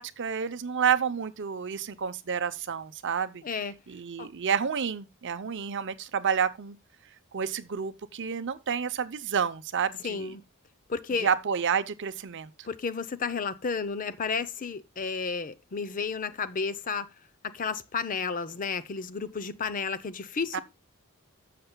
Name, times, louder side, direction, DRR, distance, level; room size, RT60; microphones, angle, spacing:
voice 1, 0.0-3.4 3.9-6.8 7.3-10.3 11.2-12.5 20.5-20.6, right 7 dB, 55° right, 0.6 m, -29 dB
voice 2, 3.4-3.8 4.2-4.3 10.0-10.4 10.9-11.3 12.6-17.1 17.4-20.6, left 5 dB, 40° left, 0.6 m, -32 dB
13.5 x 6.7 x 2.2 m
head